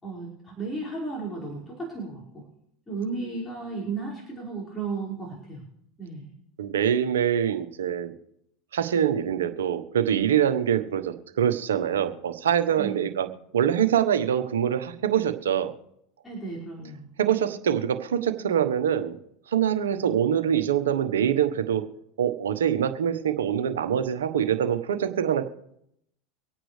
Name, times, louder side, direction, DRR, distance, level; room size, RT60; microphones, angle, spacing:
voice 1, 0.0-2.2 2.9-5.6 6.0-6.4 12.8-13.1 16.2-17.1, right 3 dB, 15° left, -5 dB, 5.4 m, -34 dB
voice 2, 6.6-8.1 8.7-13.3 13.5-15.7 17.2-19.2 19.5-21.8 22.2-25.5, right 9 dB, 85° right, 7 dB, 1.2 m, -24 dB
25.0 x 9.0 x 3.3 m, 0.76 s
hypercardioid pair, 90°, 0 cm